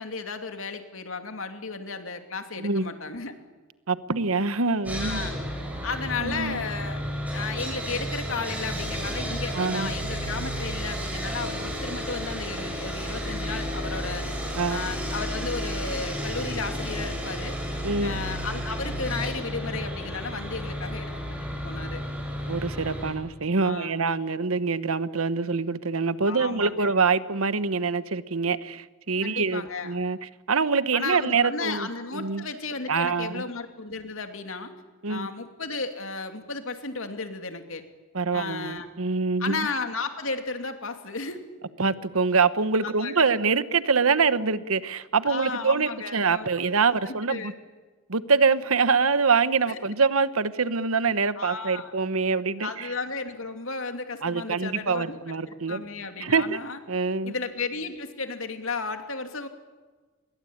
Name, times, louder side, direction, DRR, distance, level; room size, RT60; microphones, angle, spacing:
voice 1, 0.0-3.3 4.9-5.4 5.8-7.0 7.3-14.3 14.7-17.6 18.0-21.4 21.6-22.0 23.6-24.0 26.3-26.9 29.2-30.0 30.9-34.7 35.1-37.8 38.3-38.9 39.4-41.4 42.8-43.4 45.2-47.5 49.7-49.8 51.4-51.9 52.6-55.2 55.5-56.8 57.2-59.5, left 4 dB, 70° left, 6 dB, 2.7 m, -34 dB
voice 2, 2.6-2.9 3.9-5.2 6.2-6.6 9.5-9.9 14.6-14.8 17.8-18.2 22.5-30.2 30.5-31.9 32.1-32.4 32.9-33.4 35.0-35.3 38.1-39.7 41.8-47.5 48.1-52.9 54.2-55.8 56.2-56.6 56.9-57.3, right 4 dB, 80° right, 14 dB, 1.1 m, -25 dB
Sawing, 4.8-23.1, equal, 5° right, 6.7 m, -32 dB
27.5 x 22.0 x 8.7 m, 1.3 s
head